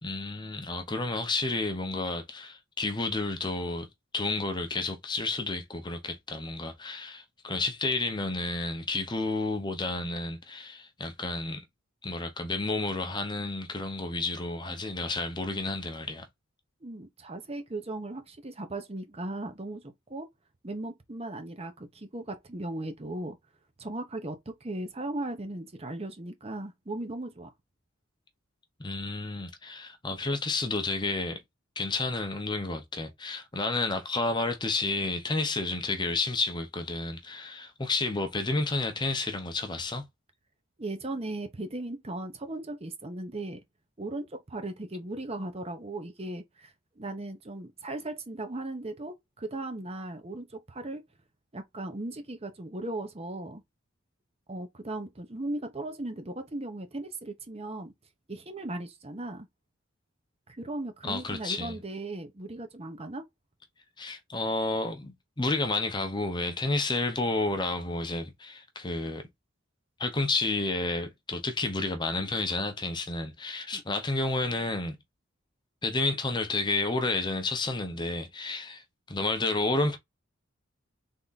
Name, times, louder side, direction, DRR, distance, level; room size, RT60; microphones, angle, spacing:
voice 1, 0.0-3.9 4.1-11.6 12.0-16.3 28.8-31.4 31.8-40.0 61.0-61.8 64.0-69.3 70.0-75.0 75.8-80.0, left 3 dB, 20° left, 0.8 m, -31 dB
voice 2, 16.8-19.8 20.1-20.3 20.6-23.4 23.8-27.5 40.8-43.6 44.0-51.0 51.5-53.6 54.5-57.9 58.3-59.5 60.5-63.2 73.7-73.8, right 2 dB, 30° right, 0.8 m, -37 dB
3.6 x 3.6 x 4.0 m
head